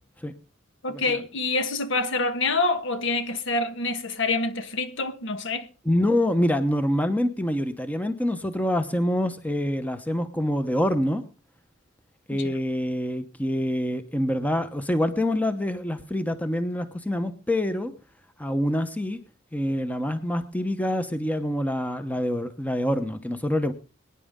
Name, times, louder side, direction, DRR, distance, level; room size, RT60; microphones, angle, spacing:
voice 1, 0.8-5.7 12.4-12.5, left 3 dB, 65° left, 1.5 m, -26 dB
voice 2, 5.8-11.2 12.3-17.9 18.4-19.2 19.5-23.7, left 1 dB, 10° left, 0.9 m, -26 dB
22.5 x 10.0 x 3.7 m
head